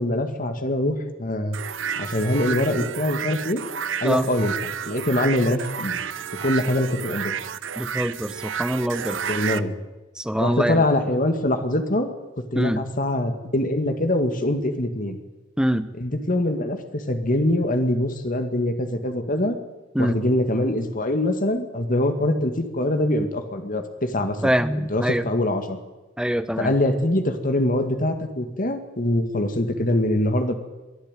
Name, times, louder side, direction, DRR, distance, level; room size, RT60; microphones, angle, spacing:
voice 1, 0.0-1.6 2.0-3.6 4.0-4.6 4.9-6.0 6.4-7.4 9.3-9.7 10.4-12.1 12.5-15.2 16.0-19.6 20.0-25.8 26.6-30.5, left 1 dB, 45° left, 7 dB, 2.1 m, -23 dB
sound 1, 1.5-9.6, right 7 dB, 80° right, 0.7 m, -31 dB
voice 2, 7.8-9.2 10.2-10.8 12.5-12.8 15.6-15.9 19.9-20.2 24.4-25.3 26.2-26.7, equal, 5° right, 11 dB, 0.9 m, -24 dB
23.0 x 13.0 x 9.2 m, 1.1 s
head